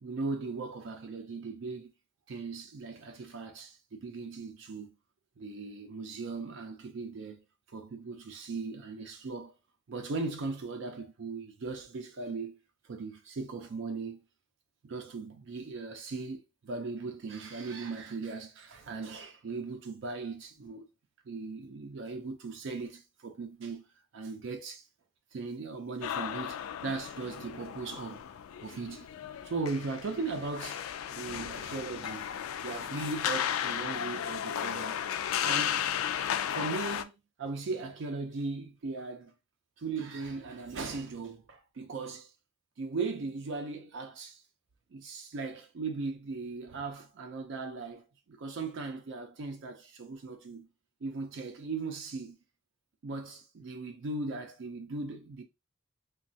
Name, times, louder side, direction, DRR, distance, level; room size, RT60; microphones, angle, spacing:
voice 1, 0.0-1.9 2.3-5.0 5.4-9.5 9.9-12.6 12.8-14.2 14.8-20.9 21.3-23.9 24.1-24.9 25.3-29.1 29.4-32.3 32.6-35.2 35.4-35.9 36.5-39.3 39.8-42.3 42.8-44.4 44.9-50.7 51.0-52.4 53.0-55.4, right 3 dB, 60° right, 0.4 m, -38 dB
sound 1, 26.0-37.0, left 9 dB, 80° left, 0.3 m, -34 dB
3.1 x 2.2 x 2.7 m
head